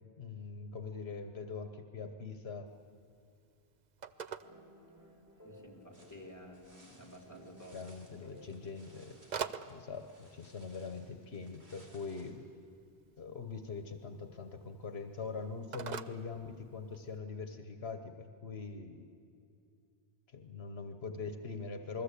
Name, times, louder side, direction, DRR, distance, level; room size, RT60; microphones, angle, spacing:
voice 1, 0.0-2.7 7.7-9.2 9.7-12.5 13.2-19.0 20.3-22.0, left 4 dB, 75° left, 7 dB, 1.3 m, -43 dB
Telephone, 2.7-17.2, right 7 dB, 45° right, 0.8 m, -49 dB
sound 1, 4.4-10.1, equal, 15° right, 3.5 m, -60 dB
voice 2, 5.4-7.8 8.2-8.5, equal, 15° left, 0 dB, 3.3 m, -52 dB
sound 2, 5.9-12.3, right 1 dB, 90° right, 3.9 m, -63 dB
28.5 x 20.5 x 8.3 m, 2.4 s
omnidirectional pair, 1.1 m